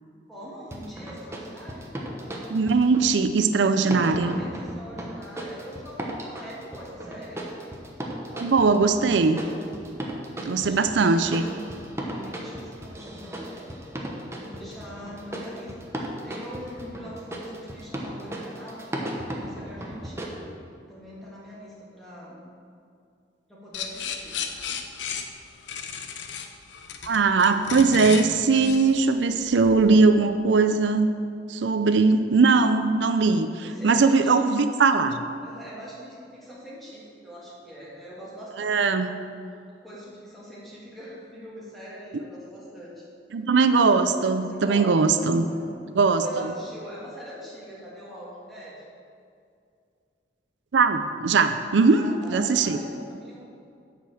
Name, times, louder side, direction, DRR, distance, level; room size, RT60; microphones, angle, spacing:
voice 1, 0.3-1.9 4.0-7.4 9.8-11.4 12.0-13.7 14.3-15.9 16.2-20.4 20.9-22.5 23.5-24.4 33.6-34.3 35.4-38.7 39.8-43.1 44.5-45.8 46.2-48.9 51.8-53.5, equal, ahead, -7 dB, 2.6 m, -42 dB
sound 1, 0.7-3.1 3.9-20.3, right 1 dB, 15° right, 1.1 m, -36 dB
voice 2, 2.5-4.4 8.3-9.4 10.4-11.4 27.0-31.1 31.5-35.2 38.6-39.1 43.3-45.5 45.9-46.2 50.7-52.0 52.3-52.8, right 4 dB, 85° right, 9 dB, 0.5 m, -20 dB
sound 2, 23.7-29.9, left 6 dB, 90° left, 0.7 m, -34 dB
10.0 x 5.2 x 7.7 m, 2.4 s
head